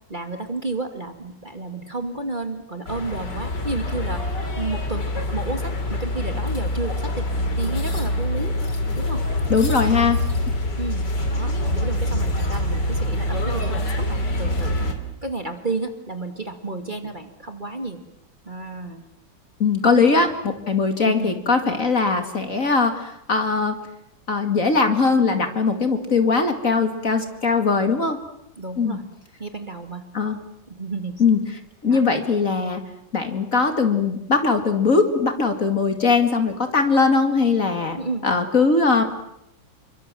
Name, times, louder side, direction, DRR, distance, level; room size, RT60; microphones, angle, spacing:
voice 1, 0.1-4.2 4.6-7.2 7.5-8.5 9.0-9.2 9.8-10.1 10.8-14.9 15.2-18.0 18.5-19.0 20.1-20.2 21.1-21.4 28.6-29.0 29.4-30.0 30.7-31.1 31.9-32.0 38.0-38.3, right 3 dB, 25° right, 6 dB, 2.3 m, -31 dB
sound 1, 2.9-14.9, left 1 dB, 60° left, 3.8 m, -25 dB
voice 2, 9.5-10.2 19.6-23.8 24.3-28.2 28.8-29.0 30.1-30.4 31.2-31.4 31.8-32.8 33.1-38.0 38.2-39.0, left 4 dB, 40° left, 6 dB, 2.5 m, -20 dB
28.5 x 24.0 x 7.7 m, 0.79 s
omnidirectional pair, 2.2 m